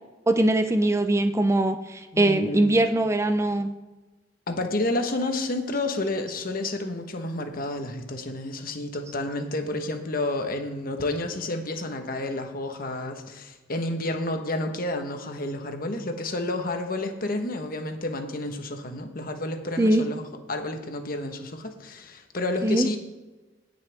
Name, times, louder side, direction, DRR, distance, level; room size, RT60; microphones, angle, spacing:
voice 1, 0.3-3.7 19.8-20.0 22.6-22.9, right 1 dB, 15° right, 9 dB, 0.4 m, -22 dB
voice 2, 2.1-2.8 4.5-20.2 20.5-23.0, left 2 dB, 50° left, 5 dB, 1.3 m, -30 dB
17.5 x 6.8 x 3.5 m, 1.2 s
head